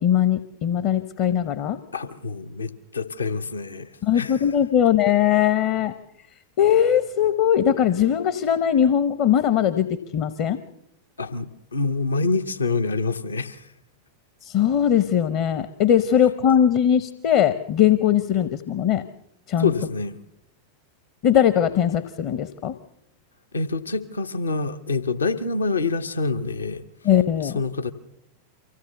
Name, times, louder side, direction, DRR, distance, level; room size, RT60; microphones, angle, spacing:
voice 1, 0.0-1.8 4.0-5.9 6.6-9.9 10.1-10.6 14.4-19.0 19.5-19.7 21.2-22.7 27.0-27.6, left 9 dB, 45° left, 11 dB, 0.8 m, -20 dB
voice 2, 1.9-4.5 11.2-13.7 19.6-20.2 23.5-26.8 27.4-27.9, left 4 dB, 75° left, 9 dB, 0.8 m, -26 dB
24.5 x 16.0 x 6.9 m, 0.80 s
figure-of-eight pair, 90°, 0 cm